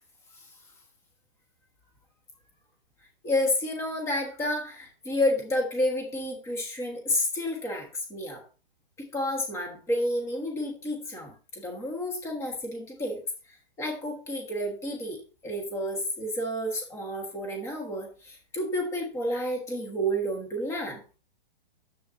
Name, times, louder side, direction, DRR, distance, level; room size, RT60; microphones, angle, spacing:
voice 1, 3.2-8.4 9.0-13.2 13.8-15.2 15.4-21.0, left 1 dB, 10° left, 2 dB, 1.4 m, -30 dB
10.5 x 7.6 x 2.7 m, 0.35 s
hypercardioid pair, 165°, 30 cm